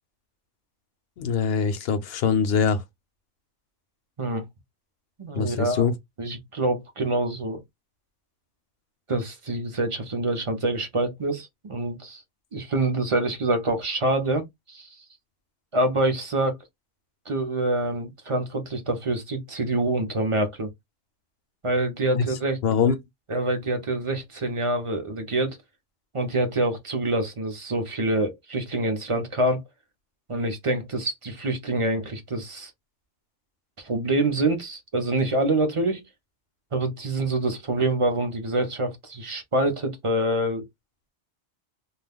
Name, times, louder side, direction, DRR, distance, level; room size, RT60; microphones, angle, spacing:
voice 1, 1.2-2.8 5.3-6.0 22.1-23.0, left 6 dB, 60° left, 0.7 m, -23 dB
voice 2, 5.2-5.9 6.2-7.6 9.1-12.2 12.5-14.9 15.7-16.6 17.3-20.7 21.6-22.6 23.3-25.6 26.1-29.6 30.3-32.7 33.8-36.0 36.7-40.7, right 2 dB, 35° right, 0.5 m, -26 dB
2.4 x 2.2 x 3.4 m
omnidirectional pair, 1.3 m